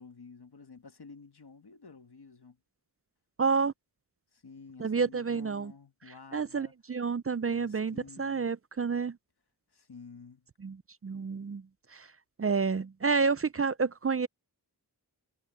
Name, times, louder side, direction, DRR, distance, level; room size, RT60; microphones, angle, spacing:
voice 1, 0.0-2.6 4.3-6.7 7.5-8.5 9.7-10.5, left 4 dB, 75° left, 1.6 m, -51 dB
voice 2, 3.4-3.7 4.8-5.7 6.3-9.2 10.6-10.8 11.0-11.6 11.9-12.1 12.4-14.3, right 5 dB, 35° right, 0.5 m, -29 dB
wide cardioid pair, 65°, 39 cm